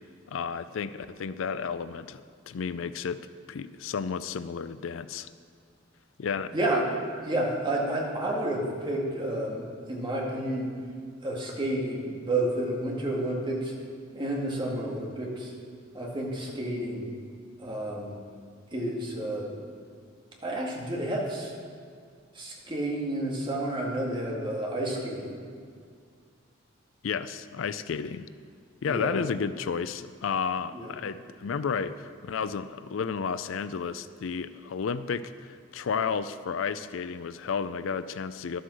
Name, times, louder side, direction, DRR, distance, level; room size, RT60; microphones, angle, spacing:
voice 1, 0.3-2.2 2.5-3.2 3.5-5.3 6.2-6.5 27.0-28.3 28.8-38.6, left 6 dB, 80° left, 14 dB, 0.4 m, -32 dB
voice 2, 6.5-6.8 7.2-10.7 11.2-13.7 14.1-15.5 15.9-17.1 17.6-18.2 18.7-19.5 20.4-21.5 22.4-25.4 28.8-29.2 30.7-30.9, right 1 dB, 25° right, -3 dB, 2.0 m, -30 dB
12.5 x 7.9 x 6.4 m, 2.1 s
head